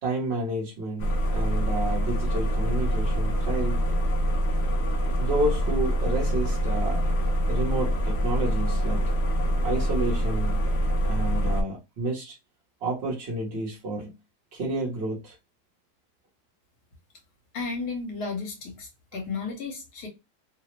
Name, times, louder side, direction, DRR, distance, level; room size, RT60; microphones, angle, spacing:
voice 1, 0.0-3.8 5.2-7.0 7.5-9.1 9.6-10.6 11.1-12.4 12.8-14.1 14.5-15.3, right 1 dB, 50° right, 0.9 m, -30 dB
sound 1, 1.0-11.6, equal, 90° left, 0.5 m, -25 dB
voice 2, 17.5-20.1, left 4 dB, 70° left, 1.6 m, -33 dB
3.3 x 2.0 x 2.9 m
omnidirectional pair, 1.8 m